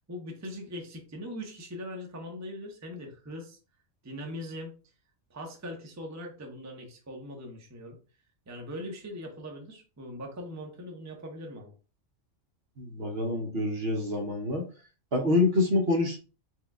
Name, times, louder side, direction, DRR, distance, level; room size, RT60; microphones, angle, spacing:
voice 1, 0.1-3.6 4.0-4.7 5.3-8.0 8.5-11.7, equal, 15° right, 1 dB, 0.7 m, -41 dB
voice 2, 12.8-14.6 15.1-16.2, left 2 dB, 55° right, 2 dB, 1.0 m, -26 dB
4.6 x 2.3 x 3.6 m, 0.34 s
omnidirectional pair, 1.3 m